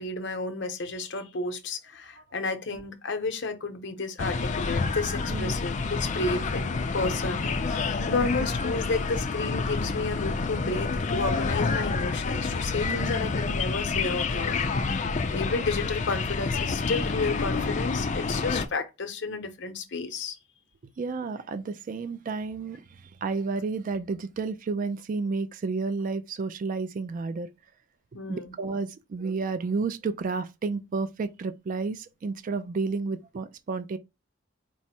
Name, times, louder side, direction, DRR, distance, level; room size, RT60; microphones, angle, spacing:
voice 1, 0.0-14.6 15.3-20.4 28.1-28.5, left 3 dB, 65° left, 0.8 m, -32 dB
sound 1, 4.2-18.7, left 4 dB, 40° left, 0.4 m, -28 dB
voice 2, 12.8-13.1 21.0-27.5 28.3-34.0, right 4 dB, 45° right, 0.3 m, -31 dB
4.6 x 2.0 x 4.2 m
head